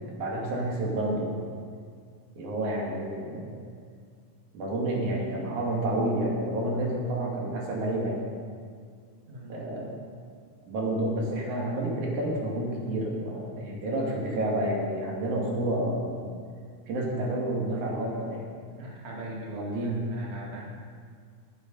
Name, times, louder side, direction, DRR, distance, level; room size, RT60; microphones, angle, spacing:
voice 1, 0.2-1.3 2.4-3.6 4.5-8.2 9.5-10.0 10.6-16.3 16.9-18.8 19.5-20.0, right 1 dB, 75° right, -2 dB, 3.6 m, -29 dB
voice 2, 9.3-9.6 18.8-20.6, right 1 dB, 25° right, -3 dB, 2.0 m, -41 dB
20.5 x 7.4 x 5.3 m, 2.1 s
omnidirectional pair, 3.5 m